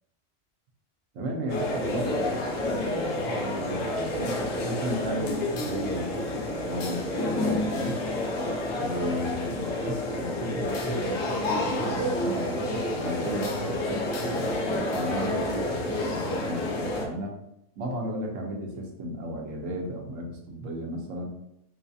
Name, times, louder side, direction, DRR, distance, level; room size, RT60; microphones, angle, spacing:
voice 1, 1.1-2.8 3.2-7.1 7.6-8.0 8.8-17.4 17.8-21.3, equal, 80° right, 1 dB, 1.1 m, -34 dB
sound 1, 1.5-17.1, left 1 dB, 80° left, 1.0 m, -29 dB
4.0 x 2.3 x 2.6 m, 0.79 s
omnidirectional pair, 1.3 m